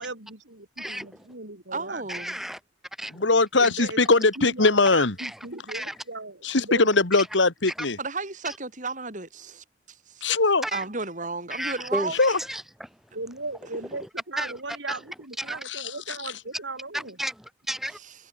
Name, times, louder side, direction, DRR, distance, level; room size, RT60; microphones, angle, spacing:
voice 1, 0.0-2.0 3.6-6.9 13.1-17.2, right 3 dB, 80° right, 5.2 m, -37 dB
voice 2, 0.8-1.3 2.1-2.6 3.0-3.3 5.2-5.4 5.7-6.0 7.8-7.9 8.4-8.5 10.6-10.8 11.5-12.9 14.0-14.1 14.4-14.5 14.9-15.0 15.4-15.6 16.9-18.0, equal, ahead, 3.3 m, -33 dB
voice 3, 1.7-2.4 8.0-10.3 10.7-12.2 18.0-18.1, right 3 dB, 45° right, 3.7 m, -33 dB
voice 4, 3.1-5.1 6.4-8.0 10.2-10.6 12.2-12.4 15.7-16.2, left 3 dB, 80° left, 2.1 m, -21 dB
head